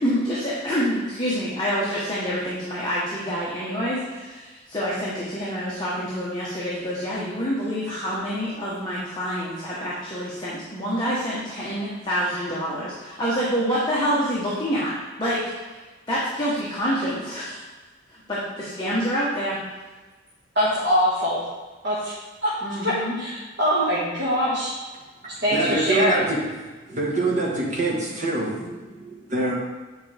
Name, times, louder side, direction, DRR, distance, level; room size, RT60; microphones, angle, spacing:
voice 1, 0.0-14.9 15.2-17.6 18.3-19.6 22.6-23.2, equal, 20° left, -7 dB, 1.1 m, -27 dB
voice 2, 20.5-21.5 21.8-22.1 22.4-22.5 22.8-24.7 25.4-26.2, equal, 60° right, -9 dB, 1.6 m, -23 dB
voice 3, 25.2-26.5 26.9-29.5, right 2 dB, 35° right, -4 dB, 1.5 m, -25 dB
8.8 x 4.7 x 3.4 m, 1.3 s
head